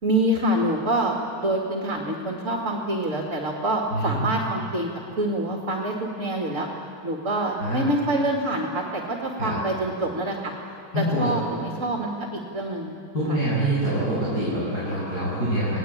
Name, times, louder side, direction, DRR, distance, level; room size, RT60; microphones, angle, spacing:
voice 1, 0.0-4.9 5.2-6.7 7.0-10.5 11.0-12.9 13.3-13.4, right 1 dB, 45° right, 1 dB, 2.6 m, -26 dB
voice 2, 3.9-4.2 7.6-7.8 9.4-9.6 10.9-11.3 13.1-15.8, right 1 dB, 60° left, -11 dB, 8.6 m, -25 dB
29.5 x 19.0 x 8.8 m, 2.7 s
omnidirectional pair, 1.9 m